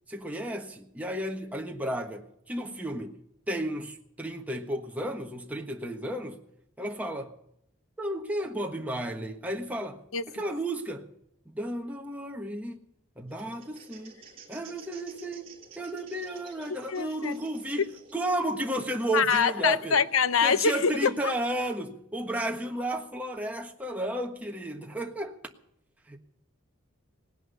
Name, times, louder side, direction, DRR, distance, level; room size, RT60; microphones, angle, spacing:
voice 1, 0.1-3.2 3.5-6.4 6.8-7.3 8.0-11.1 11.4-12.8 13.2-14.2 14.5-15.5 15.8-20.0 20.4-25.4 26.1-26.2, right 1 dB, 5° right, 1.4 m, -33 dB
sound 1, 13.3-21.5, right 4 dB, 30° right, 4.1 m, -53 dB
voice 2, 16.9-17.3 19.1-21.3, left 6 dB, 85° left, 0.8 m, -24 dB
18.5 x 10.5 x 6.9 m
head